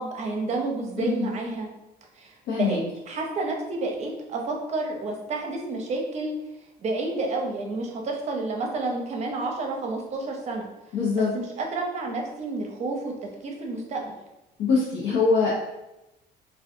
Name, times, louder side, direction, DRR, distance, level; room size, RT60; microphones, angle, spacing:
voice 1, 0.0-1.7 2.1-6.3 6.8-10.7 11.3-14.2, right 3 dB, 40° right, 1 dB, 0.5 m, -30 dB
voice 2, 1.0-1.3 2.5-2.8 10.9-11.3 14.6-15.5, left 4 dB, 85° left, -5 dB, 0.6 m, -23 dB
2.4 x 2.2 x 2.6 m, 0.95 s
cardioid pair, 110°, 17 cm